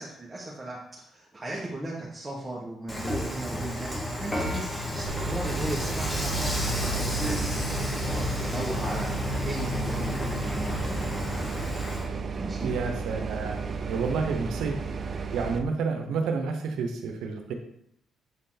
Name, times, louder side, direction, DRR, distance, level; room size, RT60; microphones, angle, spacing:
voice 1, 0.0-8.2 8.4-11.5 12.4-12.8, right 1 dB, 15° right, -5 dB, 1.4 m, -37 dB
Dishes pots and pans / Frying (food), 2.9-12.1, left 1 dB, 15° left, 1.5 m, -33 dB
sound 1, 4.2-12.8, left 1 dB, 85° left, 1.5 m, -36 dB
sound 2, 5.1-15.6, right 5 dB, 45° right, 0.6 m, -33 dB
voice 2, 12.6-14.8 15.3-17.5, right 5 dB, 80° right, 5 dB, 0.9 m, -30 dB
7.6 x 4.0 x 4.0 m, 0.74 s
cardioid pair, 80°, 0 cm